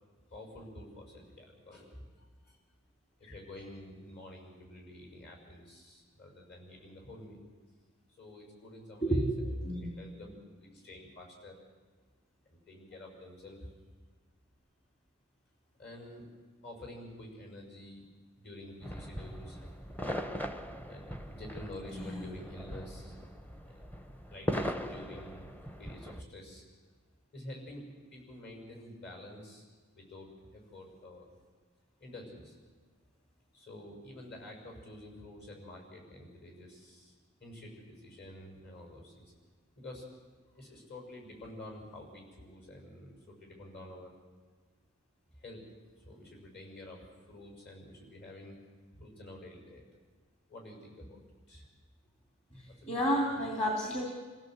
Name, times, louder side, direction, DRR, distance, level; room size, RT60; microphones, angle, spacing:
voice 1, 0.3-2.6 3.2-7.5 8.1-10.3 10.6-11.6 12.4-13.7 15.8-16.2 16.6-18.1 18.4-19.6 20.9-23.1 23.6-23.9 24.3-25.4 25.8-26.6 27.3-27.8 28.1-29.7 29.9-31.3 32.0-32.6 33.5-37.1 37.4-39.3 39.8-40.0 40.6-44.1 45.4-45.6 46.0-48.5 48.9-49.8 50.5-51.2 51.5-51.7 52.7-52.9 53.3-53.4, left 1 dB, 50° left, 2 dB, 6.6 m, -49 dB
voice 2, 9.0-9.9 21.9-22.2 52.5-54.0, equal, 30° left, 0 dB, 2.8 m, -31 dB
sound 1, 18.8-26.2, equal, 10° left, 0.8 m, -40 dB
27.0 x 16.5 x 8.0 m, 1.4 s
head